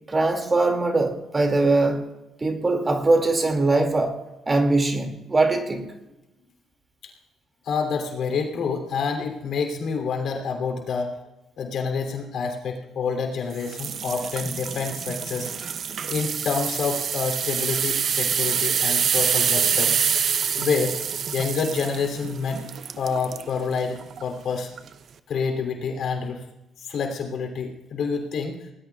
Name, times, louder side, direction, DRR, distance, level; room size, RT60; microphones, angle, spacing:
voice 1, 0.1-2.0 2.4-4.2 4.5-5.9, right 2 dB, 30° right, 4 dB, 2.3 m, -21 dB
voice 2, 7.6-11.1 11.6-15.5 16.1-19.9 20.6-21.0 21.3-22.6 23.0-24.7 25.3-26.4 26.8-28.6, left 5 dB, 70° left, 3 dB, 3.0 m, -27 dB
sound 1, 13.6-23.5 24.0-24.2 24.8-24.9, right 7 dB, 55° right, 0.7 m, -26 dB
24.5 x 18.5 x 2.4 m, 0.98 s
cardioid pair, 90°, 0 cm